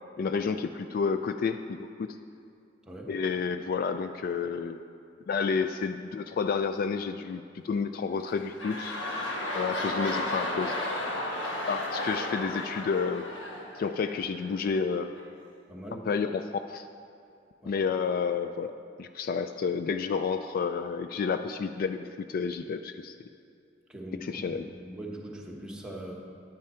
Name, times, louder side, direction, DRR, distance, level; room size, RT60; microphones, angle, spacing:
voice 1, 0.2-2.2 3.1-4.8 5.3-9.0 9.5-10.8 11.7-13.2 13.8-15.1 16.1-16.9 17.7-18.7 19.0-23.1 24.2-24.7, left 5 dB, 50° left, 9 dB, 0.3 m, -30 dB
voice 2, 2.8-3.1 15.7-16.1 17.6-17.8 23.9-26.1, right 1 dB, 5° right, -2 dB, 1.2 m, -41 dB
sound 1, 8.1-14.5 15.2-15.3, left 1 dB, 85° left, 1.4 m, -33 dB
10.0 x 9.4 x 4.4 m, 2.4 s
head